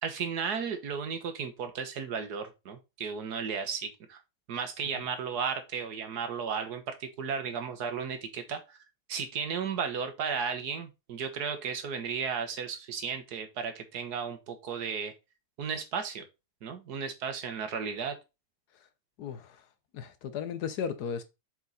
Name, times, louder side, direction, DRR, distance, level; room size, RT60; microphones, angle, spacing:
voice 1, 0.0-4.2 4.5-8.8 9.1-15.1 15.6-16.2 16.6-18.2, right 6 dB, 75° right, 1.7 m, -34 dB
voice 2, 19.2-19.6 19.9-21.2, left 7 dB, 75° left, 1.5 m, -35 dB
7.4 x 4.8 x 4.0 m
omnidirectional pair, 1.7 m